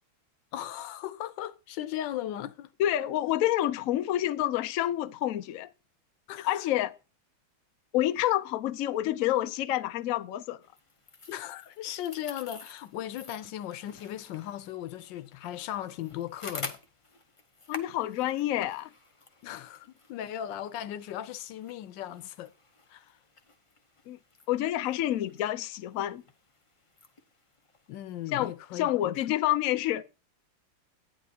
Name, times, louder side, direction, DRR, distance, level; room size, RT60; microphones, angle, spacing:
voice 1, 0.5-2.7 6.3-6.6 11.3-16.8 19.4-22.5 22.9-23.1 27.9-29.2, left 12 dB, 75° left, 1.3 m, -37 dB
voice 2, 2.8-5.7 6.4-7.0 7.9-10.6 17.7-18.9 24.1-24.2 24.5-26.2 28.3-30.1, left 13 dB, 90° left, 0.7 m, -28 dB
sound 1, 10.6-28.9, left 3 dB, 55° left, 0.3 m, -49 dB
11.5 x 9.7 x 2.8 m
omnidirectional pair, 2.1 m